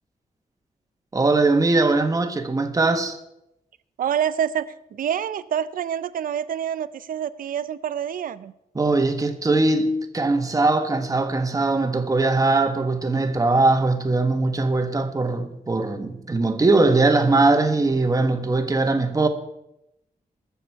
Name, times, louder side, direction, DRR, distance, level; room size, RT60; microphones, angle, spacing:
voice 1, 1.1-3.2 8.7-19.3, right 3 dB, 25° right, 1.3 m, -21 dB
voice 2, 4.0-8.5, right 9 dB, 90° right, 0.6 m, -27 dB
21.0 x 7.1 x 4.6 m
wide cardioid pair, 110°, 14 cm